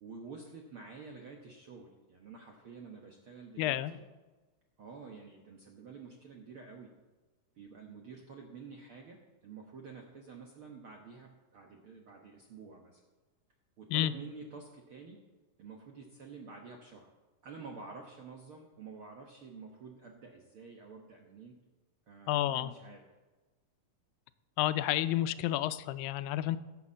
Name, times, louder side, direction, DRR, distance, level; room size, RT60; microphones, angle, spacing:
voice 1, 0.0-4.0 4.8-6.9 7.5-13.0 13.8-15.2 15.6-17.1 17.4-21.5 22.1-23.1, right 4 dB, 60° right, 1 dB, 1.4 m, -49 dB
voice 2, 3.6-3.9 13.9-14.1 22.3-22.7 24.6-26.6, left 14 dB, 90° left, 13 dB, 2.4 m, -30 dB
16.5 x 7.0 x 7.4 m, 1.2 s
omnidirectional pair, 4.0 m